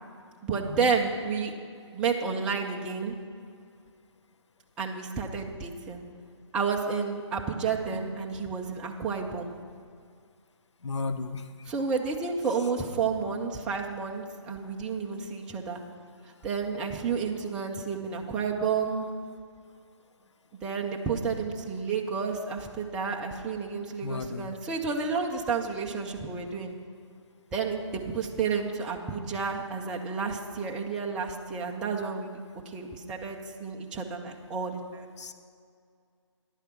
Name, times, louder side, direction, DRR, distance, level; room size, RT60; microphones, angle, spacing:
voice 1, 0.4-1.5 1.9-3.2 4.8-6.0 6.5-9.5 11.7-15.8 16.4-19.1 20.6-26.7 27.5-32.3 32.7-35.1, right 5 dB, 5° right, 0 dB, 0.3 m, -31 dB
voice 2, 10.8-11.7 12.6-12.7 24.0-24.5 35.2-35.3, left 4 dB, 70° left, 9 dB, 0.8 m, -35 dB
10.5 x 8.9 x 5.9 m, 2.2 s
hypercardioid pair, 155°, 16 cm